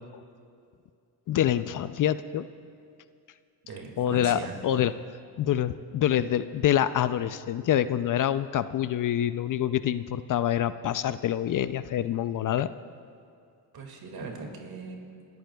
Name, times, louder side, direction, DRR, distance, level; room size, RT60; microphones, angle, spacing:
voice 1, 1.3-2.5 4.0-4.9 5.4-12.7, left 11 dB, 50° left, 13 dB, 0.5 m, -26 dB
voice 2, 3.6-4.6 13.7-15.0, right 4 dB, 60° right, 2 dB, 2.2 m, -39 dB
29.0 x 14.0 x 2.3 m, 2.3 s
cardioid pair, 80°, 42 cm